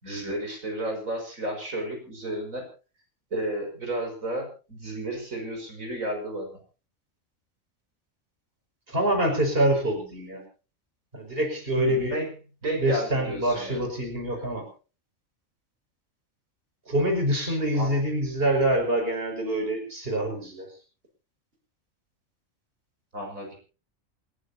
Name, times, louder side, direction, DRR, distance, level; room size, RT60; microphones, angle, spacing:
voice 1, 0.0-2.7 3.3-6.5 11.8-12.3 12.6-13.9 17.7-17.9 23.1-23.5, right 1 dB, 85° right, 3 dB, 6.3 m, -32 dB
voice 2, 8.9-10.4 11.1-12.2 12.8-14.7 16.9-20.7, right 1 dB, 45° right, 3 dB, 5.7 m, -25 dB
28.5 x 14.5 x 2.8 m, 0.36 s
omnidirectional pair, 1.4 m